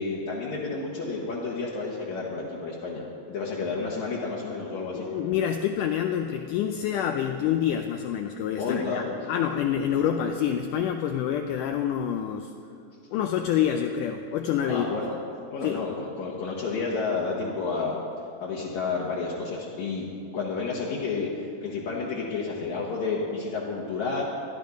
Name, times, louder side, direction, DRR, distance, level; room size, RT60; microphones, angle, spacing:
voice 1, 0.0-5.1 8.6-9.0 14.7-15.1 15.5-18.0 18.4-20.0 20.3-24.2, left 4 dB, 60° left, -5 dB, 2.4 m, -30 dB
voice 2, 4.9-12.5 13.1-14.9 15.6-15.8, left 9 dB, 90° left, 5 dB, 1.8 m, -27 dB
15.5 x 12.0 x 5.3 m, 2.6 s
omnidirectional pair, 4.3 m